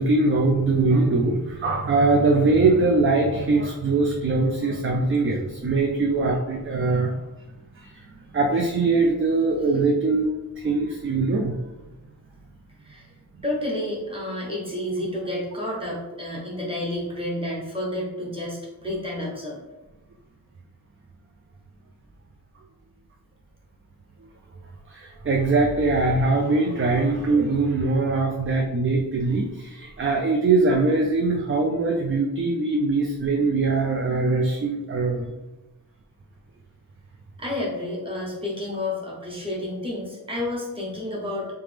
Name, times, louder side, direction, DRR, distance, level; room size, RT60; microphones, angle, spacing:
voice 1, 0.0-7.1 8.3-10.3 10.6-11.5 24.9-35.3, right 3 dB, 35° right, 1 dB, 0.4 m, -22 dB
voice 2, 13.4-19.6 37.4-41.6, left 1 dB, 15° right, -5 dB, 1.2 m, -30 dB
3.3 x 2.9 x 3.4 m, 1.1 s
wide cardioid pair, 110°, 38 cm